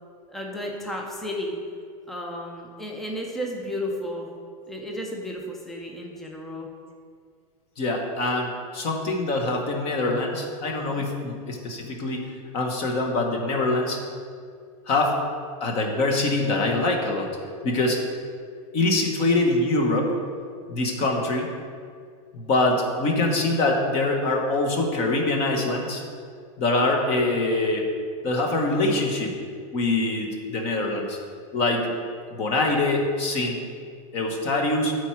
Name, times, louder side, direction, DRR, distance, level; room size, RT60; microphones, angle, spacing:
voice 1, 0.3-1.6 2.1-4.3 4.7-6.7 10.9-11.0, equal, ahead, 0 dB, 0.5 m, -33 dB
voice 2, 7.8-12.2 12.5-14.0 14.9-15.2 15.6-17.3 17.6-18.0 18.7-20.1 20.7-21.5 22.3-26.0 26.6-27.8 28.2-29.3 29.7-31.2 31.5-31.9 32.3-33.6 34.1-34.9, left 2 dB, 30° left, 2 dB, 1.2 m, -24 dB
12.0 x 4.6 x 4.6 m, 2.2 s
supercardioid pair, 165°, 19 cm